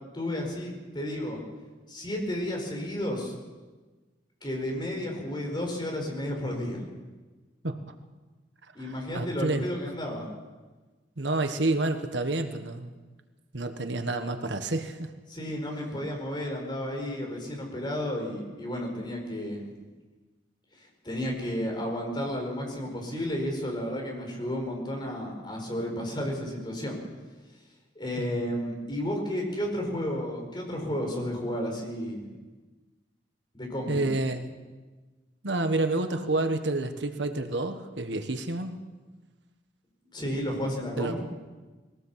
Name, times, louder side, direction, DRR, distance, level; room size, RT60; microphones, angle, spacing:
voice 1, 0.1-1.4 1.9-3.3 4.4-6.8 8.7-10.3 15.3-19.6 20.8-27.0 27.9-32.3 33.5-34.0 40.1-41.2, left 1 dB, 25° left, 1 dB, 4.9 m, -32 dB
voice 2, 8.8-9.6 11.2-12.9 13.5-15.1 28.2-28.4 33.8-34.5 35.4-38.8 41.0-41.2, right 2 dB, 75° right, 7 dB, 1.4 m, -29 dB
21.5 x 17.5 x 7.5 m, 1.3 s
head